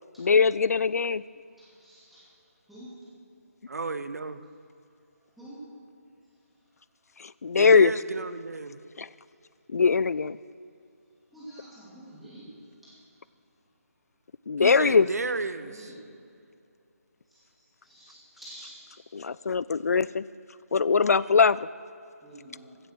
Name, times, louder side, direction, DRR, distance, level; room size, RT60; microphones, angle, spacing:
voice 1, 0.2-1.2 7.2-7.9 9.0-9.1 9.7-10.4 14.5-15.1 19.1-20.2 20.7-21.6, left 5 dB, 75° left, 19 dB, 0.3 m, -21 dB
voice 2, 1.6-2.2 2.7-2.9 5.4-5.6 11.3-12.6 12.8-13.0 15.6-16.0 17.3-17.4 17.8-19.0 21.0-21.2 22.2-22.8, right 1 dB, ahead, -10 dB, 2.6 m, -48 dB
voice 3, 3.7-4.4 7.5-8.8 14.6-15.9, right 3 dB, 80° right, 12 dB, 0.7 m, -33 dB
16.0 x 7.7 x 6.7 m, 2.5 s
figure-of-eight pair, 165°, 8 cm